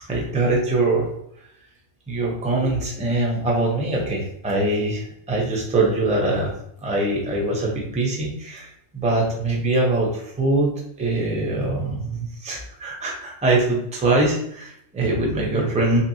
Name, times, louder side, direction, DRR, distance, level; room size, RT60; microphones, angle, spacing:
voice 1, 0.1-1.1 2.1-6.5 6.8-8.7 8.9-10.7 11.0-16.0, right 2 dB, 10° right, -2 dB, 0.3 m, -23 dB
3.1 x 2.8 x 2.7 m, 0.72 s
omnidirectional pair, 1.3 m